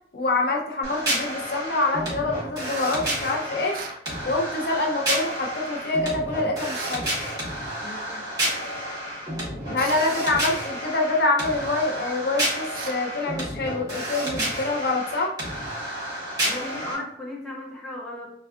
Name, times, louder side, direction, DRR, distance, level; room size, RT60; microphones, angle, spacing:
voice 1, 0.1-3.8 4.2-7.1 9.7-15.3, left 2 dB, 60° left, 0 dB, 0.5 m, -26 dB
sound 1, 0.8-16.9, right 1 dB, 20° right, 1.1 m, -30 dB
sound 2, 3.7-4.0 6.7-7.1 9.8-10.1 12.7-13.1, right 5 dB, 55° right, 0.3 m, -38 dB
voice 2, 7.8-8.4 9.7-9.8 16.4-18.3, left 1 dB, ahead, -4 dB, 0.6 m, -36 dB
4.1 x 2.3 x 2.4 m, 0.65 s
head